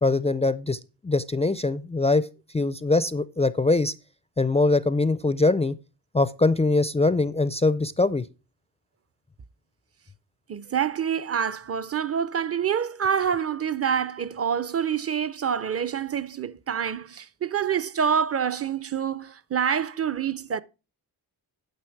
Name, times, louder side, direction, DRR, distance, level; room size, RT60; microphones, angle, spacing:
voice 1, 0.0-2.3 2.5-3.9 4.4-5.8 6.1-8.2, left 3 dB, 15° left, 0.4 m, -22 dB
voice 2, 10.5-20.6, right 7 dB, 35° right, 0.6 m, -27 dB
9.8 x 6.5 x 4.5 m
wide cardioid pair, 110°, 42 cm